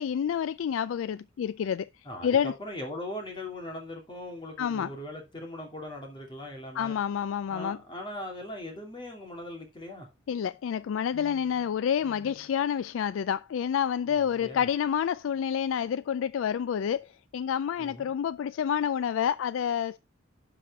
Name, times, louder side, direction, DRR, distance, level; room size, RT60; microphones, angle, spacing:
voice 1, 0.0-1.9 2.2-2.5 4.6-4.9 6.8-7.8 10.3-20.0, left 8 dB, 90° left, 0.3 m, -28 dB
voice 2, 2.0-7.0 7.5-10.1 14.1-14.7 17.8-18.1, left 1 dB, 25° left, 2.6 m, -40 dB
11.5 x 4.9 x 3.6 m
head